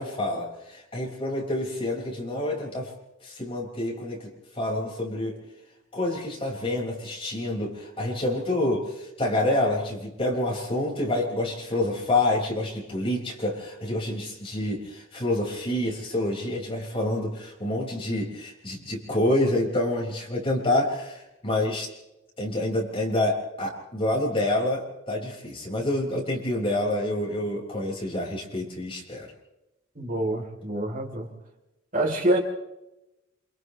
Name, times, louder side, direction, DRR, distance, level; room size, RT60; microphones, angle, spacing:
voice 1, 0.0-2.9 3.2-5.4 5.9-21.9 22.4-29.3, left 1 dB, 30° left, -2 dB, 6.0 m, -27 dB
voice 2, 30.0-31.3 31.9-32.4, right 1 dB, 45° right, 1 dB, 4.0 m, -26 dB
28.5 x 27.5 x 3.4 m, 0.95 s
head